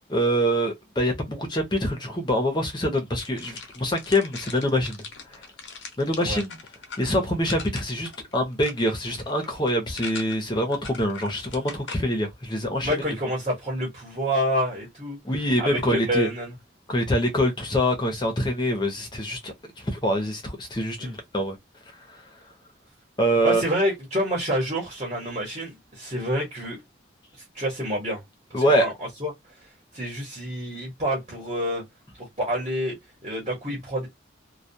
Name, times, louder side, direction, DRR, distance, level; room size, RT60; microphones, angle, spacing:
voice 1, 0.1-5.0 5.3-5.4 6.0-6.6 7.0-12.9 15.2-16.3 16.9-21.6 22.1-22.2 23.2-23.6 28.5-28.9, equal, 20° left, 0.7 m, -25 dB
sound 1, 3.2-12.0, left 5 dB, 75° left, 0.7 m, -40 dB
voice 2, 12.8-15.2 15.6-16.5 21.0-21.1 23.4-26.8 27.5-28.2 28.5-29.3 29.9-31.8 32.2-34.1, equal, 30° right, 1.0 m, -28 dB
2.2 x 2.2 x 2.7 m
head